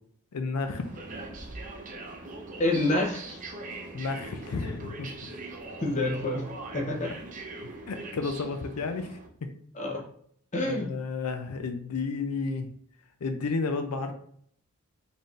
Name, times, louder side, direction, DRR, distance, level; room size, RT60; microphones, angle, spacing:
voice 1, 0.3-0.8 3.9-5.3 7.9-9.2 10.6-12.7 13.2-14.1, left 4 dB, 85° left, 6 dB, 0.5 m, -32 dB
sound 1, 0.6-9.3, right 2 dB, 35° right, 0.6 m, -41 dB
voice 2, 2.6-3.4 5.8-6.4 6.7-7.1 9.7-10.0 10.5-10.9, left 2 dB, 35° left, 1 dB, 0.7 m, -27 dB
4.1 x 3.4 x 2.5 m, 0.63 s
head